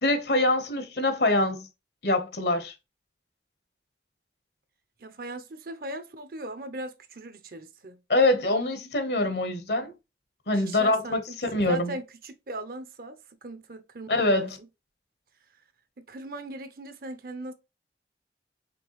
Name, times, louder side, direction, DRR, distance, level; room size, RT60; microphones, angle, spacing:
voice 1, 0.0-1.7 2.0-2.7 8.1-9.9 10.5-11.9 14.1-14.6, left 2 dB, 65° left, 1.1 m, -24 dB
voice 2, 5.0-8.0 10.5-14.5 16.0-17.5, right 2 dB, 50° right, 0.7 m, -39 dB
5.2 x 3.3 x 3.1 m
head